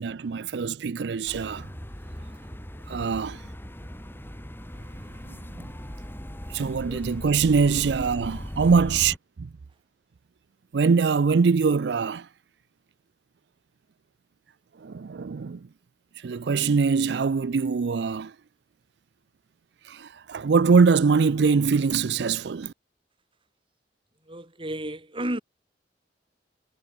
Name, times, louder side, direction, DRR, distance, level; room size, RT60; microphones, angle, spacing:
voice 1, 0.0-1.7 2.9-3.4 6.5-9.2 10.7-12.3 14.8-15.6 16.2-18.3 19.9-22.7, right 5 dB, 65° right, 0.4 m, -23 dB
sound 1, 1.3-9.2, equal, 10° left, 2.2 m, -38 dB
voice 2, 24.3-25.4, right 1 dB, 30° right, 4.3 m, -32 dB
head